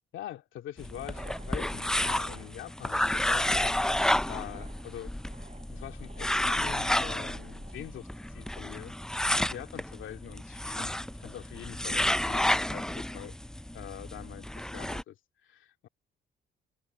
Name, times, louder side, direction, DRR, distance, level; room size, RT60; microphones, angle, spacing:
voice 1, 0.1-3.8 4.3-5.1 5.7-8.9 9.3-10.9 11.2-13.4 13.7-15.9, left 12 dB, 80° left, 2.2 m, -44 dB
sound 1, 0.7-8.7, right 5 dB, 35° right, 7.5 m, -55 dB
sound 2, 0.8-15.0, left 1 dB, 5° left, 0.4 m, -31 dB
cardioid pair, 90°, 20 cm